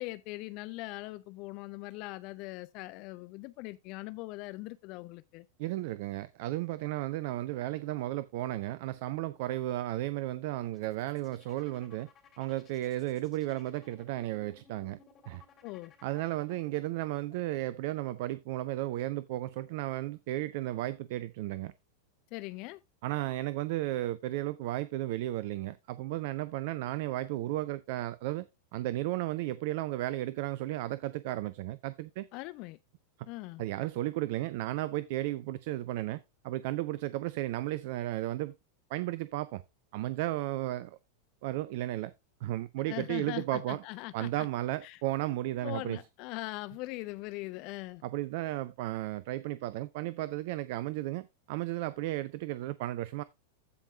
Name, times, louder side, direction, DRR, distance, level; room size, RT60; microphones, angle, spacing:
voice 1, 0.0-5.5 15.6-15.9 22.3-22.8 32.3-32.8 33.3-33.6 42.9-44.5 44.8-45.0 45.6-48.0, left 20 dB, 40° left, 0.4 m, -41 dB
voice 2, 5.6-12.1 12.4-15.0 15.3-15.4 16.0-21.7 23.0-28.5 28.7-32.3 33.6-38.5 38.9-39.6 39.9-41.0 41.4-42.1 42.4-43.8 44.1-46.0 48.0-53.2, right 16 dB, 50° right, 0.4 m, -34 dB
sound 1, 10.7-16.9, left 7 dB, 25° left, 3.3 m, -60 dB
15.5 x 5.3 x 2.4 m
figure-of-eight pair, 90°, 0 cm